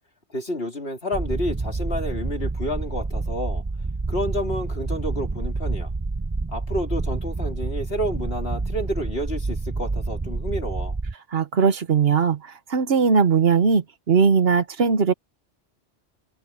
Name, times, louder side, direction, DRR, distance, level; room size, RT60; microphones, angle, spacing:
voice 1, 0.3-3.6 4.1-5.9 6.5-11.0, equal, 65° left, 3.9 m, -30 dB
sound 1, 1.1-11.1, right 3 dB, 20° right, 0.5 m, -28 dB
voice 2, 11.3-12.4 12.7-15.1, right 5 dB, 65° right, 1.2 m, -19 dB
omnidirectional pair, 1.1 m